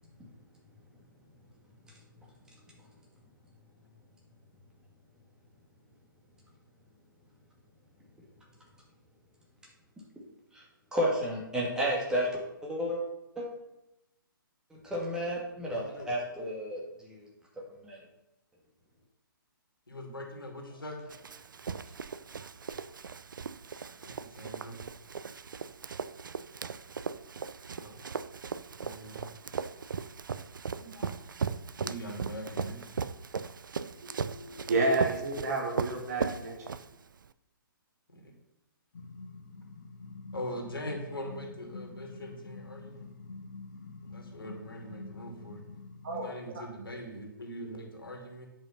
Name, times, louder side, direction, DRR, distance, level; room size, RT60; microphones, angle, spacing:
voice 1, 10.9-13.0 13.4-13.5 14.7-17.3 17.6-18.0, equal, 5° right, -3 dB, 1.9 m, -32 dB
voice 2, 15.5-16.1 19.9-21.0 24.0-24.8 27.7-28.0 28.8-29.3 30.7-31.2 31.8-33.0 35.6-35.7 38.1-38.3 40.3-43.1 44.0-45.6 46.1-48.5, equal, 75° left, 1 dB, 2.6 m, -42 dB
Run, 21.1-37.3, right 6 dB, 60° right, 0.4 m, -38 dB
voice 3, 34.0-36.8 46.0-46.3 46.6-46.7, right 2 dB, 45° right, 1 dB, 2.0 m, -31 dB
sound 1, 38.9-46.3, left 3 dB, 50° left, 1.4 m, -46 dB
9.7 x 5.5 x 5.8 m, 0.91 s
figure-of-eight pair, 130°, 12 cm